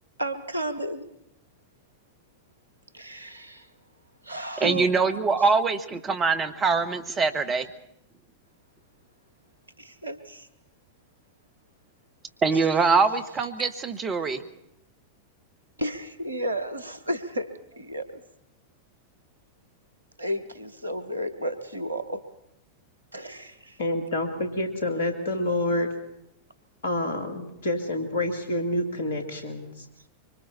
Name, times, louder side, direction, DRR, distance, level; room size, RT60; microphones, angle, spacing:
voice 1, 0.2-1.0 2.9-3.7 4.2-4.8 9.8-10.5 12.5-12.7 13.6-13.7 15.8-18.2 20.2-22.2 23.1-23.8, right 1 dB, 80° right, 12 dB, 1.2 m, -33 dB
voice 2, 4.6-7.7 12.4-14.4, right 4 dB, 25° right, 9 dB, 1.5 m, -23 dB
voice 3, 23.8-25.9 26.8-29.8, left 1 dB, 65° left, 5 dB, 2.6 m, -28 dB
25.0 x 24.5 x 4.4 m, 0.82 s
figure-of-eight pair, 90°, 0 cm